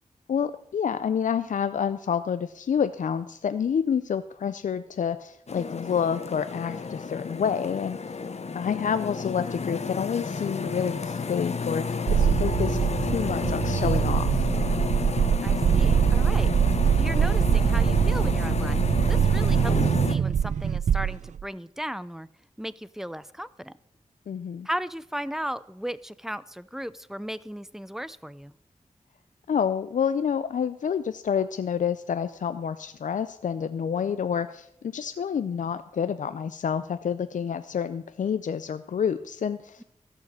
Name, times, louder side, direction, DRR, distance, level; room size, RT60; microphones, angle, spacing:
voice 1, 0.3-8.0 8.5-14.5 24.3-24.7 29.5-39.8, left 7 dB, 85° left, 12 dB, 0.5 m, -28 dB
sound 1, 5.5-20.2, left 5 dB, 60° left, 0.9 m, -31 dB
sound 2, 12.1-21.4, right 8 dB, 70° right, 0.4 m, -23 dB
voice 2, 15.4-16.5 17.0-22.3 22.6-23.7 24.6-28.5, equal, 5° right, 17 dB, 0.5 m, -36 dB
13.5 x 6.5 x 7.4 m, 0.72 s
wide cardioid pair, 70°, 13 cm